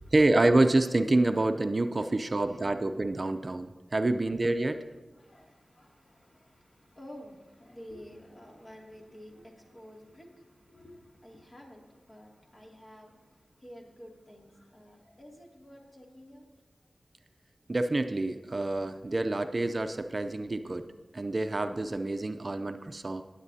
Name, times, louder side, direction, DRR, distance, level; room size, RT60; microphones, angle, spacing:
voice 1, 0.1-4.8 17.7-20.9 21.1-23.2, right 2 dB, 45° right, 8 dB, 0.5 m, -27 dB
voice 2, 2.0-2.7 4.1-4.2 4.6-4.9 5.1-16.5, equal, 45° left, -1 dB, 2.5 m, -51 dB
18.0 x 8.2 x 2.8 m, 1.2 s
cardioid pair, 50°, 0 cm